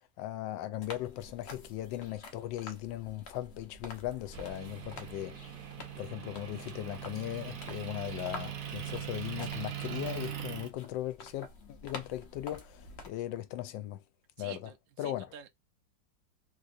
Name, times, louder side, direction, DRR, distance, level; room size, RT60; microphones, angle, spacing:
voice 1, 0.2-5.4 6.0-14.0 14.4-14.7 15.0-15.3, left 13 dB, 85° left, 1.3 m, -38 dB
sound 1, 0.8-13.1, left 3 dB, 50° left, 0.7 m, -49 dB
Motor vehicle (road) / Engine, 4.3-10.7, right 10 dB, 65° right, 1.2 m, -41 dB
voice 2, 14.4-14.8 15.0-15.5, right 9 dB, 80° right, 1.3 m, -48 dB
3.6 x 2.7 x 2.5 m
omnidirectional pair, 2.0 m